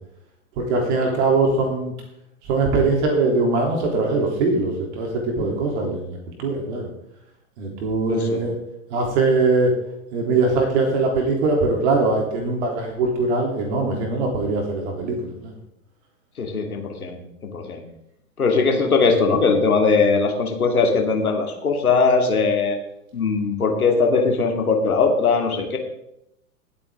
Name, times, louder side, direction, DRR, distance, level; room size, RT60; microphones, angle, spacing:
voice 1, 0.6-1.9 2.4-6.9 7.6-8.5 8.9-9.8 10.1-15.5, right 3 dB, 50° right, 1 dB, 3.5 m, -21 dB
voice 2, 8.1-8.4 16.4-17.8 18.4-22.8 23.1-25.8, left 4 dB, 75° left, 3 dB, 2.6 m, -20 dB
21.0 x 8.5 x 3.8 m, 0.81 s
figure-of-eight pair, 100°, 44 cm